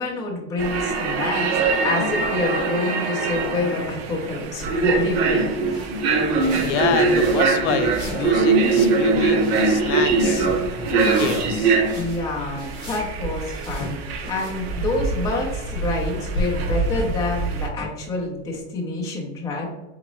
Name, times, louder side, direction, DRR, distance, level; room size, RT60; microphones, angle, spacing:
voice 1, 0.0-5.8 11.9-19.6, left 3 dB, 10° left, -3 dB, 0.5 m, -27 dB
sound 1, 0.6-17.7, right 4 dB, 55° right, 0.7 m, -22 dB
sound 2, 4.4-18.6, left 2 dB, 30° left, 1.3 m, -35 dB
sound 3, 5.5-15.0, right 1 dB, 10° right, 1.4 m, -40 dB
voice 2, 6.6-10.5 10.9-11.8, left 8 dB, 75° left, 9 dB, 0.6 m, -27 dB
4.0 x 3.5 x 3.0 m, 1.1 s
supercardioid pair, 165°, 36 cm